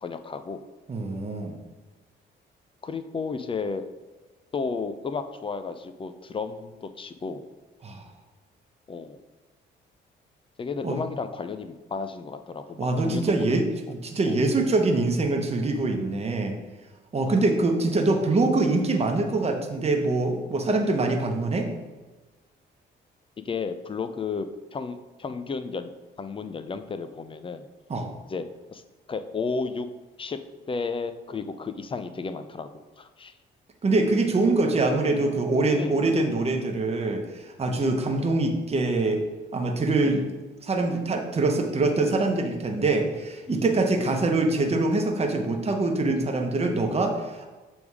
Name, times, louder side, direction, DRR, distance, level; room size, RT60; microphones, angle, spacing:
voice 1, 0.0-0.6 2.8-3.8 4.5-7.5 8.9-9.2 10.6-13.6 14.3-14.4 17.3-17.4 18.8-18.9 21.0-21.2 23.4-25.9 26.2-27.7 28.3-28.8 29.1-29.9 30.2-30.4 30.7-33.3 34.8-34.9 35.8-36.0 37.8-38.1 40.0-40.3 43.5-43.7 44.0-44.3, left 4 dB, 25° left, 10 dB, 0.5 m, -33 dB
voice 2, 0.9-1.5 7.8-8.0 10.8-11.0 12.8-16.5 17.1-21.7 27.9-28.1 33.8-39.2 39.5-40.2 40.6-47.5, right 2 dB, 30° right, 3 dB, 1.0 m, -24 dB
7.0 x 3.5 x 4.7 m, 1.2 s
cardioid pair, 90°, 20 cm